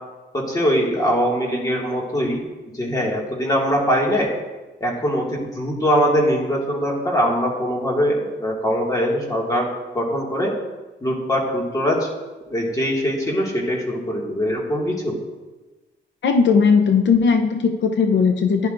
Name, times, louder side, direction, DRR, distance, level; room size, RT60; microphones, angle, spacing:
voice 1, 0.3-2.4 2.7-4.3 4.8-9.7 9.9-10.5 11.0-12.1 12.5-15.2, equal, 20° left, -2 dB, 2.0 m, -22 dB
voice 2, 16.2-18.7, left 5 dB, 75° left, 6 dB, 0.6 m, -17 dB
15.5 x 10.0 x 2.6 m, 1.2 s
wide cardioid pair, 160°, 19 cm